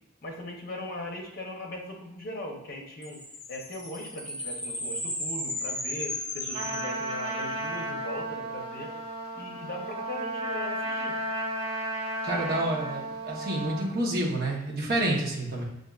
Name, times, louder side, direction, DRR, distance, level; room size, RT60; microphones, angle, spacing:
voice 1, 0.2-3.2 3.5-8.9 9.3-11.1, left 1 dB, 45° left, 0 dB, 0.7 m, -39 dB
sound 1, 3.0-7.6, left 1 dB, 5° left, 0.3 m, -35 dB
Trumpet, 6.5-13.9, right 1 dB, 85° right, 1.0 m, -33 dB
voice 2, 12.2-15.6, right 1 dB, 45° right, -4 dB, 0.9 m, -29 dB
6.3 x 2.5 x 2.4 m, 0.91 s
head